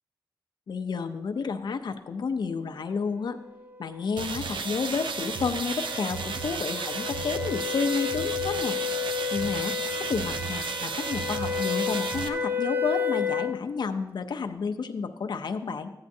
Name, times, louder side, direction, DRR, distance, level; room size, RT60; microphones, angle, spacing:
voice 1, 0.7-3.4 3.8-8.8 9.3-15.9, left 5 dB, 65° left, 6 dB, 0.5 m, -31 dB
sound 1, 3.7-13.6, left 7 dB, 25° right, 0.5 m, -32 dB
sound 2, 4.2-12.3, right 5 dB, 90° right, 0.5 m, -33 dB
14.0 x 9.5 x 2.7 m, 1.0 s
wide cardioid pair, 165°, 8 cm